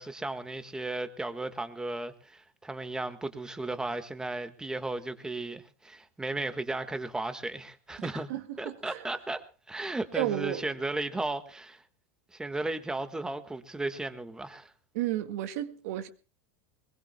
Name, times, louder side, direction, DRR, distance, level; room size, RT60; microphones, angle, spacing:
voice 1, 0.0-8.3 8.6-11.8 12.3-14.7, right 2 dB, 10° right, 1.6 m, -35 dB
voice 2, 8.0-9.0 10.1-10.6 14.9-16.1, right 13 dB, 70° right, 1.8 m, -33 dB
22.5 x 21.0 x 2.2 m
supercardioid pair, 120°, 8 cm